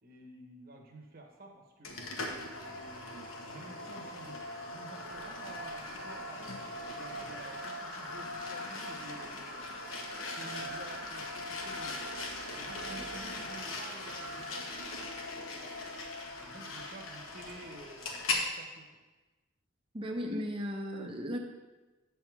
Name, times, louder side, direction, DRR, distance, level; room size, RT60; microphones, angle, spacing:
voice 1, 0.0-2.0 2.5-4.4 4.7-6.5 6.9-9.7 10.3-12.1 12.6-14.8 16.4-18.9, right 1 dB, 45° right, 1 dB, 1.1 m, -50 dB
sound 1, 1.8-18.5, left 2 dB, 80° left, 1.1 m, -40 dB
voice 2, 19.9-21.4, equal, 25° right, 2 dB, 0.6 m, -35 dB
8.5 x 3.5 x 6.0 m, 1.2 s
head